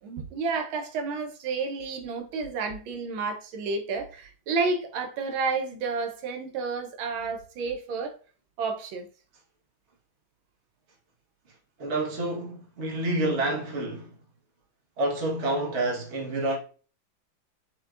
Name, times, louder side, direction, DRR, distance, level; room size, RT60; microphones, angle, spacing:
voice 1, 0.0-8.1 8.6-9.1, right 4 dB, 90° right, 1.6 m, -31 dB
voice 2, 11.8-14.2 15.0-16.6, right 2 dB, 40° right, 1.3 m, -28 dB
6.1 x 2.9 x 2.4 m
omnidirectional pair, 2.2 m